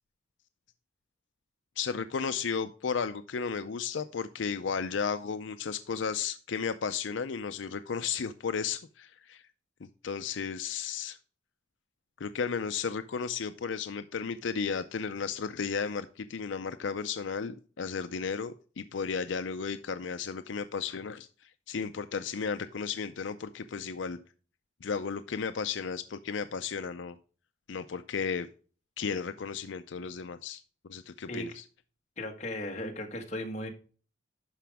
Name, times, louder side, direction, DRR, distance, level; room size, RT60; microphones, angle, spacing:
voice 1, 1.8-9.4 9.8-11.2 12.2-24.2 24.8-27.2 27.7-28.5 29.0-31.6, left 6 dB, 80° left, 0.5 m, -34 dB
voice 2, 32.2-33.7, left 1 dB, 35° left, 1.6 m, -36 dB
11.5 x 5.1 x 3.4 m
head